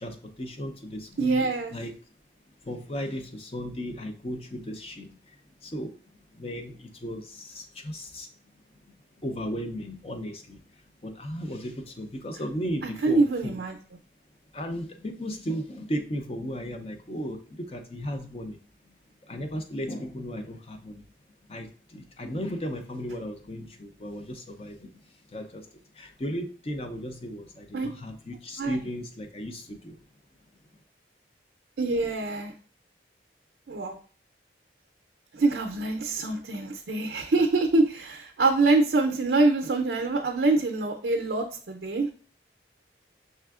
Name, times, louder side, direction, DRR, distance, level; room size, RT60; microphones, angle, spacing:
voice 1, 0.0-1.9 2.6-5.9 6.3-8.3 8.8-13.6 14.5-18.6 18.8-18.9 19.2-21.1 21.5-30.0, equal, 35° left, 5 dB, 0.5 m, -36 dB
voice 2, 1.2-1.7 13.0-13.8 27.7-27.9 28.6-28.8 31.8-32.5 33.7-34.0 35.3-42.1, right 3 dB, 70° right, 2 dB, 0.5 m, -25 dB
5.5 x 3.4 x 2.4 m, 0.41 s
head